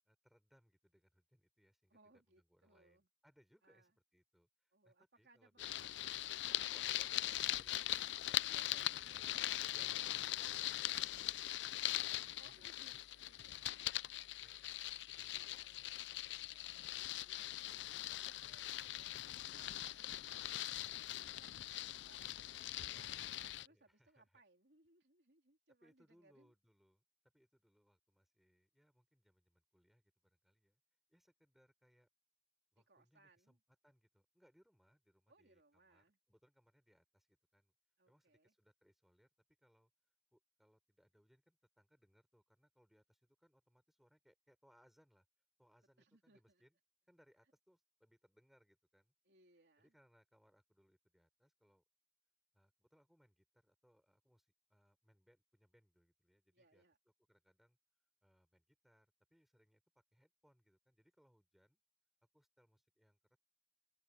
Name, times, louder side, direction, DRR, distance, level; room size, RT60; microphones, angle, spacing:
voice 1, 0.0-6.0 6.7-9.2 9.5-11.6 12.5-12.9 14.4-15.9 17.0-18.4 22.9-24.4 25.8-27.0 27.3-30.8 31.1-32.1 32.7-33.6 33.8-37.7 38.1-39.3 39.6-39.9 40.3-45.3 45.6-46.8 47.1-49.1 49.8-51.8 52.5-56.8 57.3-57.8 58.2-61.8 62.3-63.4, equal, ahead, 4.7 m, -73 dB
voice 2, 1.9-3.1 3.6-3.9 4.7-6.7 7.0-7.2 8.4-9.6 12.3-14.3 15.2-16.9 17.3-17.5 17.9-19.2 19.5-20.1 20.6-26.5 32.8-33.6 35.3-36.2 38.0-38.5 46.0-46.6 49.2-49.9 56.5-57.0, right 2 dB, 65° right, 3.6 m, -69 dB
sound 1, 5.6-23.7, left 14 dB, 75° left, 0.4 m, -41 dB
open air
head